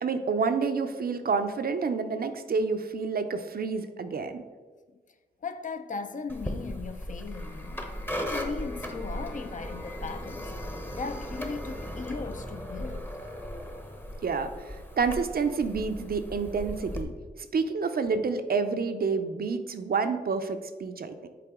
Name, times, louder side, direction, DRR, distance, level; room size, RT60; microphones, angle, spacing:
voice 1, 0.0-4.4 14.2-17.1 17.5-21.3, right 5 dB, 60° right, 0.5 m, -29 dB
voice 2, 5.4-10.6 10.9-13.1, left 4 dB, 45° left, 0.4 m, -38 dB
sound 1, 6.3-17.0, equal, 10° left, 0.7 m, -37 dB
6.8 x 4.2 x 3.6 m
cardioid pair, 70°, 18 cm